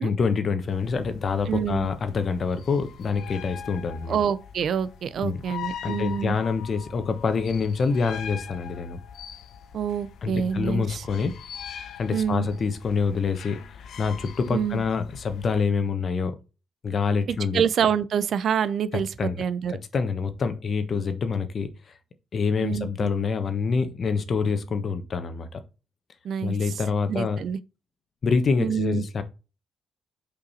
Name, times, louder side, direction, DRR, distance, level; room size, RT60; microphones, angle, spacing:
voice 1, 0.0-4.2 5.2-5.4 5.8-9.0 10.2-11.3 12.0-16.4 16.8-17.6 19.2-19.4 19.7-21.7 22.3-25.6 26.4-27.4 28.2-29.2, left 5 dB, 50° left, 1.2 m, -26 dB
sound 1, 0.7-15.6, left 8 dB, 75° left, 0.9 m, -42 dB
voice 2, 1.5-1.9 4.1-6.4 9.7-11.0 12.1-12.5 14.5-14.8 17.3-19.1 19.4-19.7 22.6-23.1 26.2-26.6 27.1-27.6 28.6-29.0, right 8 dB, 65° right, 0.6 m, -26 dB
5.7 x 5.1 x 4.2 m
cardioid pair, 95°, 0 cm